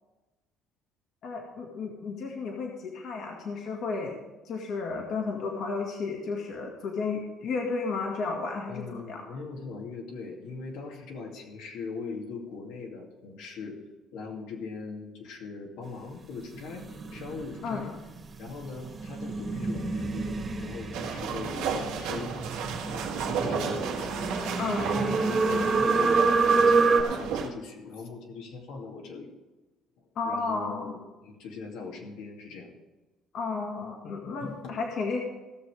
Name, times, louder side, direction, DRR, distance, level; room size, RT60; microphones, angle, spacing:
voice 1, 1.2-4.2 4.5-9.2 17.6-17.9 24.6-24.9 30.2-30.9 33.3-35.2, left 4 dB, 55° left, 0 dB, 2.0 m, -33 dB
voice 2, 8.7-13.8 14.1-17.9 18.4-24.5 24.8-29.3 30.0-32.7 34.4-34.8, left 4 dB, 80° left, 0 dB, 2.4 m, -41 dB
sound 1, 16.5-27.0, right 4 dB, 25° right, 2.0 m, -28 dB
sound 2, 20.9-27.5, right 6 dB, 85° right, 1.6 m, -33 dB
17.0 x 6.7 x 4.9 m, 1.1 s
cardioid pair, 120°, 0 cm